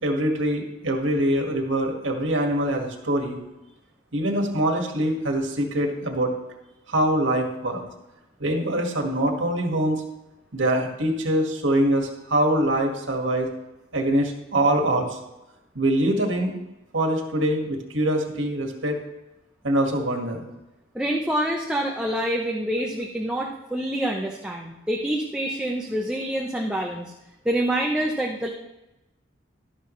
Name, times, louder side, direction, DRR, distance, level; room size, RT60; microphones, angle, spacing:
voice 1, 0.0-3.4 4.1-6.3 6.9-7.8 8.4-10.0 10.5-13.5 13.9-15.2 15.8-16.6 16.9-19.0 19.6-20.5, right 1 dB, 85° right, 2 dB, 1.8 m, -24 dB
voice 2, 20.9-27.1 27.4-28.5, right 1 dB, 5° right, -1 dB, 0.7 m, -26 dB
12.0 x 11.5 x 3.2 m, 0.97 s
head